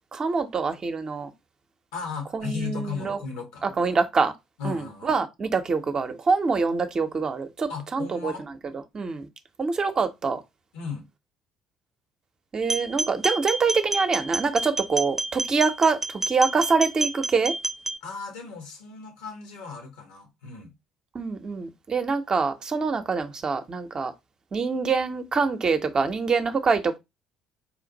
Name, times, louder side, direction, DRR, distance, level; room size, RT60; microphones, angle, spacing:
voice 1, 0.1-1.3 2.3-3.2 3.6-4.3 4.6-9.3 9.6-10.4 12.5-17.5 21.1-24.1 24.5-27.0, right 4 dB, 35° right, 0.8 m, -25 dB
voice 2, 1.9-3.6 4.6-5.1 7.7-8.5 10.7-11.1 18.0-20.7, left 5 dB, 70° left, 1.3 m, -36 dB
sound 1, 12.6-18.0, right 2 dB, 15° right, 0.4 m, -29 dB
4.4 x 2.5 x 4.0 m
figure-of-eight pair, 50°, 2 cm